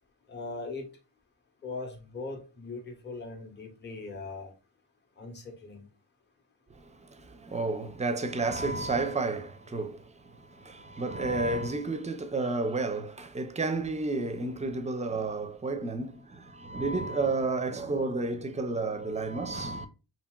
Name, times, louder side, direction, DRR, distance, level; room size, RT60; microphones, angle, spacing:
voice 1, 0.3-0.9 1.6-4.5 5.2-5.8, left 3 dB, 25° left, 0.7 m, -40 dB
voice 2, 6.7-19.9, right 3 dB, 15° right, 0.4 m, -31 dB
2.8 x 2.8 x 2.2 m
cardioid pair, 60°, 42 cm